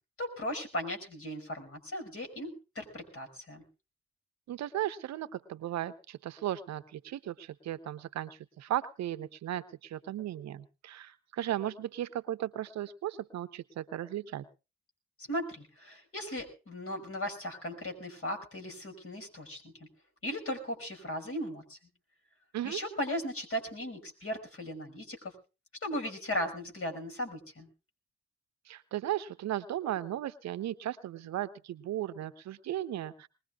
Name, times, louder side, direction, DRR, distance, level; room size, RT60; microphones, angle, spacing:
voice 1, 0.2-3.6 15.2-19.7 20.2-21.8 22.6-25.3 25.8-27.7, equal, 50° left, 4 dB, 5.6 m, -37 dB
voice 2, 4.5-8.3 8.6-14.4 22.5-22.8 28.7-33.3, right 12 dB, 65° right, 13 dB, 0.8 m, -36 dB
21.5 x 20.0 x 2.4 m, 0.32 s
hypercardioid pair, 40°, 30 cm